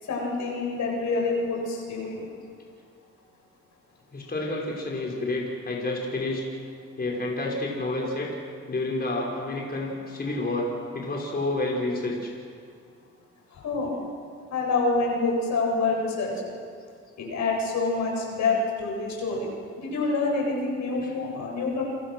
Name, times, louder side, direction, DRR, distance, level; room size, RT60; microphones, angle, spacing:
voice 1, 0.0-2.2 13.5-13.9 14.5-16.3 17.2-19.5 19.8-21.9, left 3 dB, 70° left, -1 dB, 7.8 m, -27 dB
voice 2, 4.1-6.4 7.0-8.3 8.7-10.7 10.9-12.3 21.0-21.1, left 2 dB, 30° left, -2 dB, 5.6 m, -29 dB
29.0 x 23.5 x 6.3 m, 2.2 s
cardioid pair, 90°, 30 cm